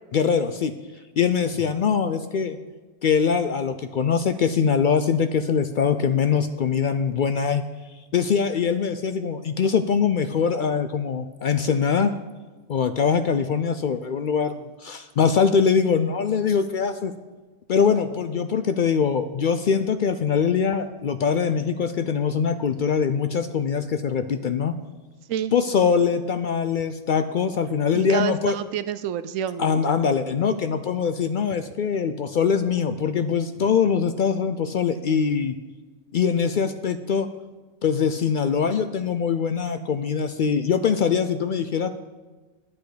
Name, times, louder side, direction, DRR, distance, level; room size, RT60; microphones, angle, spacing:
voice 1, 0.1-0.7 1.2-2.6 3.0-7.6 8.1-12.1 12.7-17.1 17.7-24.7 25.5-28.6 29.6-35.5 36.1-37.3 37.8-41.9, left 6 dB, 70° left, 10 dB, 0.4 m, -23 dB
voice 2, 27.9-29.8, right 10 dB, 80° right, 13 dB, 1.0 m, -28 dB
10.5 x 10.0 x 5.0 m, 1.3 s
omnidirectional pair, 1.4 m